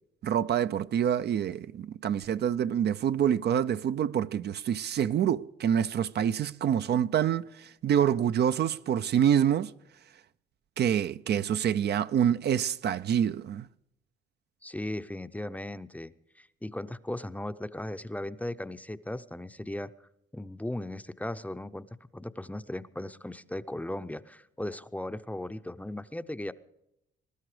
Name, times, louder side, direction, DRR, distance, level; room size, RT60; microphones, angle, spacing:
voice 1, 0.2-9.7 10.8-13.7, right 9 dB, 55° right, 0.5 m, -26 dB
voice 2, 14.6-19.9 20.3-21.9 22.1-26.5, left 1 dB, 5° left, 0.6 m, -37 dB
22.0 x 12.0 x 5.0 m
cardioid pair, 90°, 20 cm